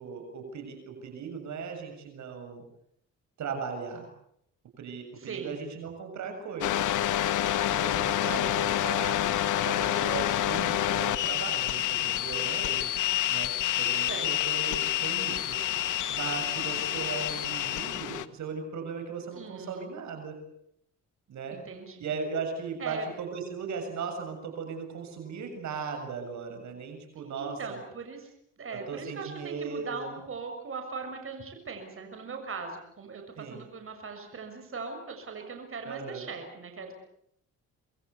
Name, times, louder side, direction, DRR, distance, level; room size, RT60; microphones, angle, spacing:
voice 1, 0.0-2.6 3.4-4.1 4.8-6.9 7.7-9.2 9.6-12.9 13.3-15.6 16.1-20.4 21.3-21.6 22.0-27.8 28.7-30.2 33.4-33.6 35.8-36.3, right 5 dB, 70° right, 5 dB, 7.3 m, -38 dB
voice 2, 5.2-5.6 8.4-8.5 14.0-14.6 19.3-19.9 21.5-22.1 22.8-23.0 27.2-28.3 28.6-36.9, right 4 dB, 45° right, 4 dB, 6.9 m, -40 dB
sound 1, 6.6-18.3, left 12 dB, 80° left, 1.4 m, -28 dB
27.0 x 21.5 x 8.3 m, 0.74 s
cardioid pair, 90°, 30 cm